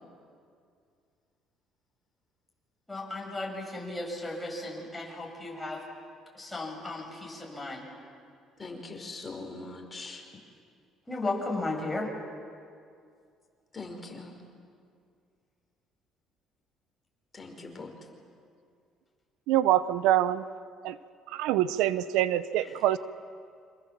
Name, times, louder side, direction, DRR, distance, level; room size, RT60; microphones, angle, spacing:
voice 1, 2.9-5.8 6.3-7.9 11.1-12.1 17.7-17.8 22.6-22.8, left 2 dB, 10° left, -1 dB, 7.4 m, -35 dB
voice 2, 8.6-10.2 13.7-14.3 17.3-17.9, left 3 dB, 25° left, 3 dB, 5.0 m, -41 dB
voice 3, 19.5-20.4 20.8-21.0 21.3-23.0, right 13 dB, 90° right, 14 dB, 0.8 m, -25 dB
28.5 x 26.5 x 7.5 m, 2.3 s
cardioid pair, 115°, 0 cm